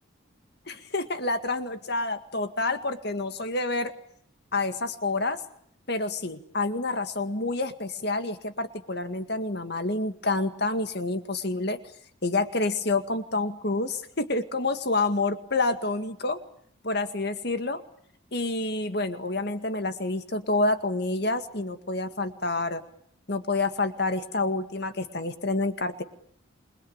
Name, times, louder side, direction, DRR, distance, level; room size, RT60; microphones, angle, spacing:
voice 1, 0.7-3.9 4.5-5.4 5.9-11.8 12.2-16.4 16.8-17.8 18.3-22.8 23.3-26.0, left 2 dB, 55° left, 8 dB, 2.0 m, -28 dB
28.0 x 22.0 x 8.7 m, 0.66 s
head